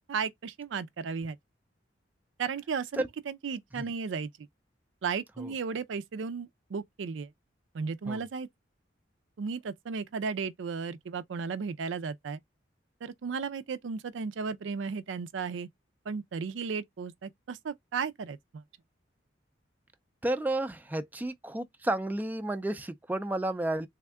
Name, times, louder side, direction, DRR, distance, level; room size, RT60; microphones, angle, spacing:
voice 1, 0.1-1.4 2.4-4.3 5.0-7.3 7.7-8.5 9.4-12.4 13.0-15.7 16.1-18.6, right 5 dB, 80° right, 0.4 m, -35 dB
voice 2, 20.2-23.9, right 1 dB, 10° right, 0.3 m, -32 dB
3.5 x 2.2 x 3.4 m
head